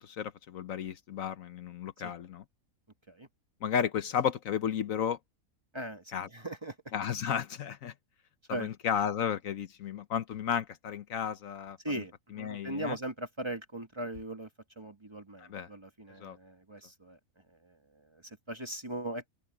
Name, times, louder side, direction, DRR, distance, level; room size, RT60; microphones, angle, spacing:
voice 1, 0.0-2.4 3.6-5.2 6.1-6.3 6.9-7.9 8.5-11.8 12.3-13.0 15.4-15.7 16.2-16.4, left 8 dB, 65° left, 1.2 m, -33 dB
voice 2, 5.7-6.8 8.5-8.7 11.8-14.5 14.8-17.2 17.5-19.3, right 1 dB, 20° right, 1.3 m, -39 dB
omnidirectional pair, 1.6 m